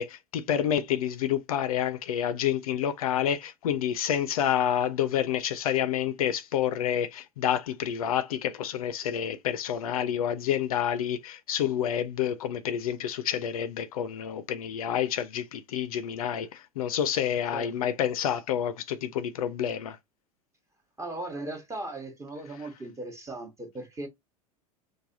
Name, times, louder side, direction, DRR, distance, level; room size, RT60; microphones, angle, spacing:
voice 1, 0.0-20.0, left 9 dB, 70° left, 0.4 m, -28 dB
voice 2, 17.5-17.9 21.0-24.1, right 2 dB, 15° right, 0.9 m, -38 dB
3.2 x 2.2 x 2.6 m
figure-of-eight pair, 80°, 19 cm